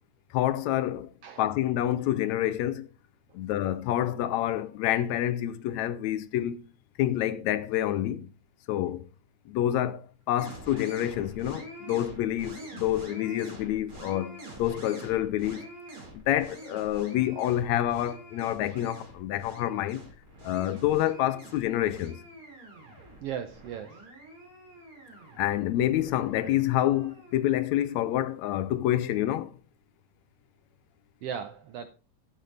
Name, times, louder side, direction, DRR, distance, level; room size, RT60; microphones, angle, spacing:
voice 1, 0.3-1.1 1.4-2.9 3.3-6.7 7.0-8.3 8.7-9.1 9.5-15.7 16.1-20.0 20.4-22.2 25.4-29.6, left 12 dB, 80° left, 1.9 m, -28 dB
sound 1, 10.4-27.3, right 1 dB, 30° right, 4.1 m, -46 dB
voice 2, 23.2-24.0 31.2-31.9, right 8 dB, 75° right, 1.4 m, -37 dB
12.5 x 7.3 x 3.9 m
omnidirectional pair, 3.3 m